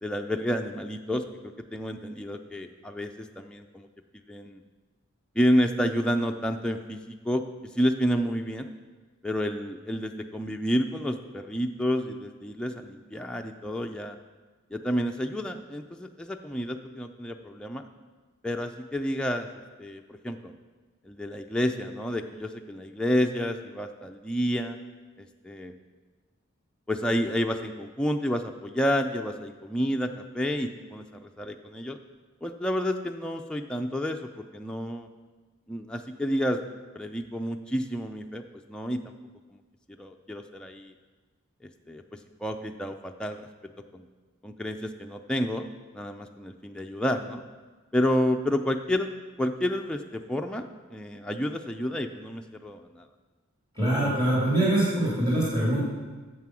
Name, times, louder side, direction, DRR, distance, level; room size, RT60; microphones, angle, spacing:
voice 1, 0.0-1.2 1.7-3.9 4.3-4.6 5.4-7.4 7.8-8.7 9.2-14.2 14.7-17.9 18.4-19.5 19.8-20.5 21.1-24.8 25.2-25.7 26.9-32.0 32.4-35.1 35.7-36.6 36.9-39.0 40.0-40.9 41.6-42.0 42.4-43.5 43.9-44.1 44.4-45.6 45.9-47.4 47.9-49.1 49.4-53.1, equal, 5° left, 3 dB, 0.4 m, -30 dB
voice 2, 53.7-55.8, right 1 dB, 25° right, -8 dB, 2.8 m, -24 dB
9.5 x 7.5 x 6.1 m, 1.3 s
head